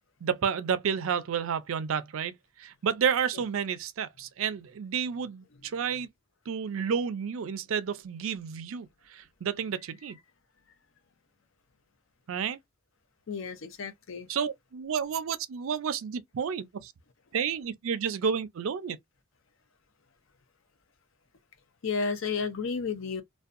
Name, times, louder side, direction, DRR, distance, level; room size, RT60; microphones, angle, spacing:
voice 1, 0.2-6.1 6.5-10.2 12.3-12.6 14.3-16.9 17.3-19.0, right 7 dB, 70° right, 0.4 m, -31 dB
voice 2, 13.3-14.3 21.8-23.2, left 5 dB, 65° left, 0.5 m, -32 dB
2.6 x 2.2 x 2.4 m
head